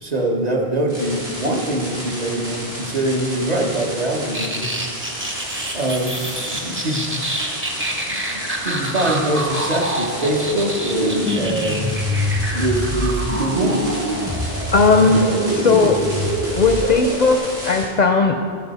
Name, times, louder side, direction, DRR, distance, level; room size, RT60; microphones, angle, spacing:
voice 1, 0.0-4.8 5.7-6.2 6.4-7.1 8.1-11.8 12.5-13.8, right 1 dB, 45° right, 0 dB, 1.1 m, -23 dB
sound 1, 0.9-17.9, equal, 80° right, 3.3 m, -32 dB
sound 2, 4.3-17.4, equal, 15° right, 0.6 m, -25 dB
voice 2, 14.7-16.0 16.6-18.4, left 4 dB, 55° left, 4 dB, 0.5 m, -17 dB
14.5 x 5.4 x 4.1 m, 2.1 s
omnidirectional pair, 1.0 m